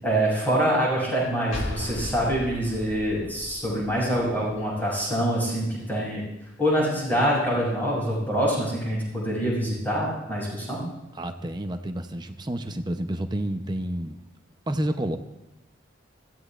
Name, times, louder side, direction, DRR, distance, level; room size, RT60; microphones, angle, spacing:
voice 1, 0.0-6.2 6.6-10.9, equal, 10° left, -6 dB, 6.9 m, -25 dB
sound 1, 1.5-5.0, left 1 dB, 85° left, 2.2 m, -37 dB
voice 2, 11.1-14.2 14.7-15.2, right 1 dB, 20° right, 7 dB, 0.8 m, -29 dB
25.0 x 15.5 x 2.5 m, 0.95 s
head